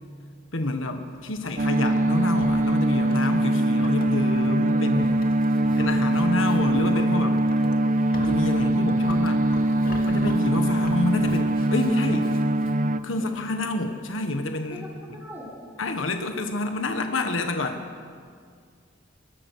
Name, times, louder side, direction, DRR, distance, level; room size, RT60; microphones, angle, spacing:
voice 1, 0.5-5.2 5.8-7.4 8.2-9.4 10.1-12.3 13.0-14.8 15.8-17.9, left 2 dB, 70° left, 6 dB, 1.6 m, -28 dB
Livestock farm animals working animals, 1.1-12.8, left 2 dB, 45° left, 2.5 m, -44 dB
sound 1, 1.6-13.0, right 1 dB, 40° right, 0.7 m, -22 dB
voice 2, 4.7-5.1 7.6-7.8 13.1-13.3 14.7-15.5, equal, 10° right, -5 dB, 4.6 m, -41 dB
22.0 x 22.0 x 6.6 m, 2.1 s
head